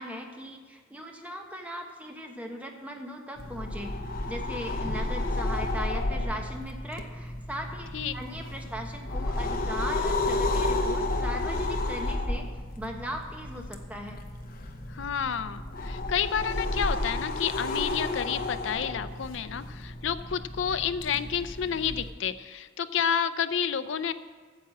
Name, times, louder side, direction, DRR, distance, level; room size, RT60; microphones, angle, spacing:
voice 1, 0.0-3.9 4.3-12.5 12.8-14.2, equal, 5° right, 2 dB, 1.0 m, -38 dB
sound 1, 3.4-22.1, left 2 dB, 45° left, 0.9 m, -32 dB
voice 2, 14.9-24.1, left 7 dB, 70° left, 11 dB, 0.5 m, -30 dB
9.6 x 7.1 x 7.6 m, 1.5 s
head